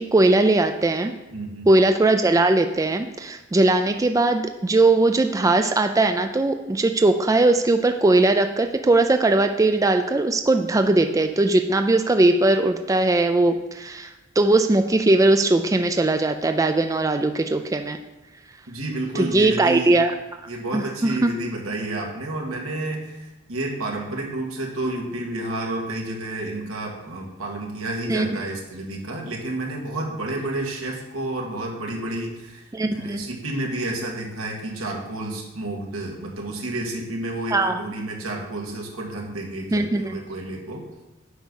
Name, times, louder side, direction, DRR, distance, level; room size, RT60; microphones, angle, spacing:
voice 1, 0.0-1.1 1.7-14.1 14.4-18.0 19.2-20.1 20.7-21.3 28.1-28.3 32.7-33.2 37.5-37.8 39.7-40.2, right 2 dB, 15° right, 7 dB, 0.3 m, -19 dB
voice 2, 1.3-1.7 18.7-20.0 20.5-40.9, right 2 dB, 85° right, -1 dB, 2.0 m, -30 dB
8.1 x 5.4 x 6.3 m, 1.1 s
head